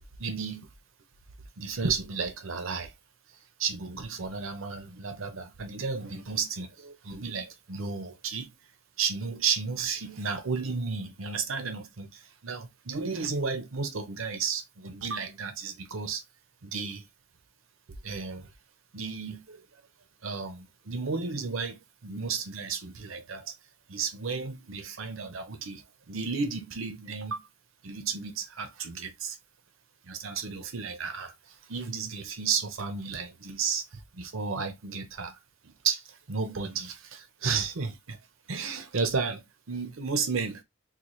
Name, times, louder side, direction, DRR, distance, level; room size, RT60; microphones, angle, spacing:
voice 1, 0.2-0.7 1.6-2.9 3.6-8.5 9.0-16.2 16.6-17.0 18.0-18.5 18.9-19.6 20.2-23.5 23.9-25.8 26.1-27.4 27.8-29.4 30.0-35.4 35.6-38.2 38.5-40.6, right 5 dB, 75° right, 0.7 m, -33 dB
4.0 x 2.4 x 3.0 m
head